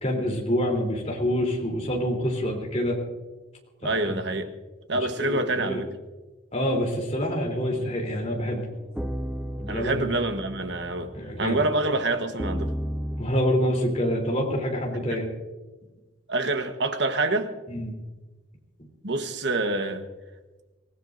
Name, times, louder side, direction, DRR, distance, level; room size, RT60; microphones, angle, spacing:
voice 1, 0.0-3.0 3.8-4.2 5.2-5.8 6.5-8.6 9.6-10.0 11.1-11.6 13.1-15.3 17.7-17.9, equal, 35° left, 3.4 m, -27 dB
voice 2, 3.8-4.5 4.9-5.9 9.7-12.8 16.3-17.5 19.0-20.0, right 2 dB, 65° right, 1.2 m, -26 dB
sound 1, 8.9-11.7 12.4-13.2, equal, 5° right, 0.4 m, -33 dB
25.5 x 17.0 x 2.6 m
head